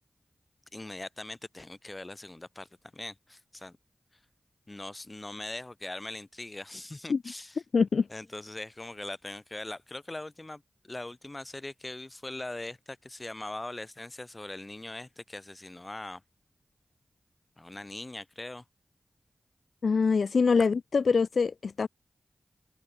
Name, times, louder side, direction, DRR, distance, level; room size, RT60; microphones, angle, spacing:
voice 1, 0.7-3.8 4.7-7.6 8.1-16.2 17.6-18.6, left 2 dB, 30° left, 6.0 m, -41 dB
voice 2, 7.7-8.1 19.8-21.9, left 5 dB, 80° left, 0.6 m, -24 dB
cardioid pair, 45°, 0 cm